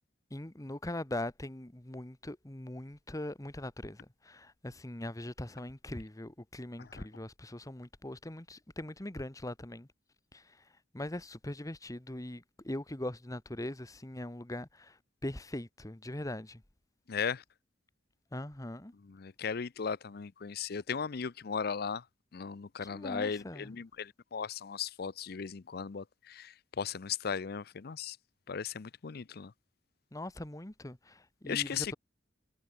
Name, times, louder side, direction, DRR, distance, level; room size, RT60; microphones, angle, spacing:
voice 1, 0.3-4.0 4.3-9.9 10.9-14.7 15.2-16.6 18.3-18.9 22.9-23.7 30.1-31.0 31.4-31.9, left 1 dB, 20° left, 1.3 m, -41 dB
voice 2, 17.1-17.4 19.0-22.0 22.3-28.2 28.5-29.5 31.5-31.9, left 6 dB, 60° left, 0.6 m, -37 dB
head